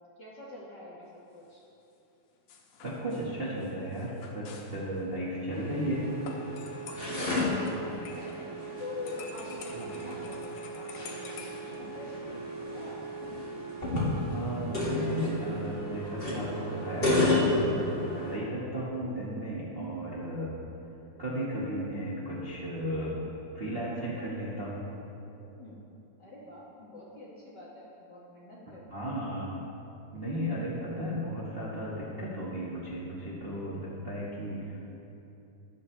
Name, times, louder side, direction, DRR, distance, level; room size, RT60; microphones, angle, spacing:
voice 1, 0.2-1.6 7.7-8.4 8.8-11.3 11.7-13.0 25.4-25.8 26.2-29.2, left 3 dB, 50° left, -7 dB, 1.3 m, -46 dB
sound 1, 2.5-4.8 6.2-8.8 9.1-11.8, left 5 dB, 90° left, 2.5 m, -48 dB
voice 2, 2.8-6.1 9.7-9.9 14.3-20.5 21.2-23.2 23.5-24.9 28.9-29.6 30.1-34.8, equal, 35° right, -7 dB, 0.9 m, -34 dB
sound 2, 5.5-18.4, left 1 dB, 25° left, 1.6 m, -32 dB
13.5 x 11.0 x 3.3 m, 2.9 s
omnidirectional pair, 3.6 m